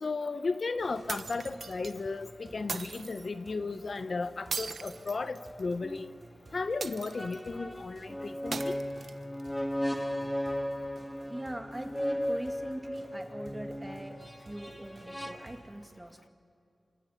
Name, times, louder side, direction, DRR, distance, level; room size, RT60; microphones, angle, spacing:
voice 1, 0.0-6.1 6.5-8.7, left 3 dB, 60° left, 11 dB, 0.8 m, -35 dB
sound 1, 0.8-15.7, right 2 dB, 55° right, 4.2 m, -55 dB
sound 2, 1.1-1.9 2.7-3.3 4.5-5.7 6.8-7.5 8.5-9.5, right 4 dB, 70° right, 0.8 m, -39 dB
sound 3, 5.8-6.0 7.1-15.3, equal, 10° left, 2.0 m, -36 dB
voice 2, 11.3-16.3, right 1 dB, 15° right, 5 dB, 2.0 m, -42 dB
27.0 x 27.0 x 5.8 m, 2.4 s
cardioid pair, 60°, 0 cm